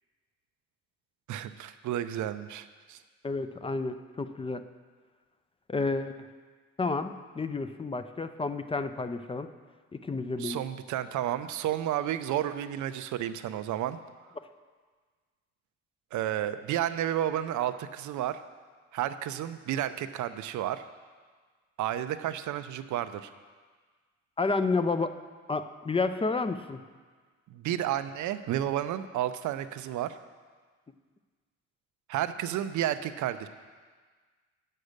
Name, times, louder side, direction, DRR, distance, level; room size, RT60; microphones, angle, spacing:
voice 1, 1.3-3.0 10.4-14.0 16.1-18.4 18.9-20.8 21.8-23.3 27.5-30.2 32.1-33.5, right 11 dB, 75° right, 11 dB, 0.6 m, -31 dB
voice 2, 3.2-4.6 5.7-6.2 6.8-9.5 9.9-10.6 24.4-25.1 25.5-26.8, left 3 dB, 20° left, 10 dB, 0.5 m, -30 dB
8.5 x 6.6 x 6.5 m, 1.5 s
cardioid pair, 90°, 30 cm